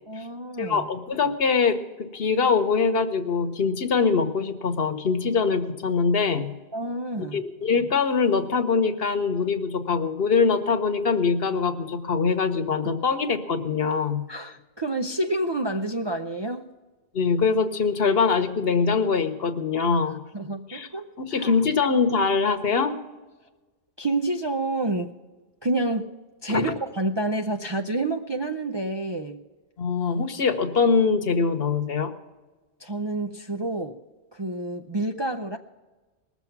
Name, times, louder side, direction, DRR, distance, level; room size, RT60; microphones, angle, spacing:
voice 1, 0.1-0.9 6.7-7.4 14.3-16.7 20.3-21.6 24.0-25.1 25.6-29.4 32.8-34.0 34.3-35.6, right 2 dB, 35° right, 4 dB, 0.4 m, -29 dB
voice 2, 0.6-6.5 7.3-14.2 17.1-20.2 20.7-20.9 21.2-22.9 26.5-26.7 29.8-32.1, left 5 dB, 60° left, 8 dB, 1.1 m, -23 dB
20.0 x 7.2 x 5.9 m, 1.2 s
omnidirectional pair, 1.2 m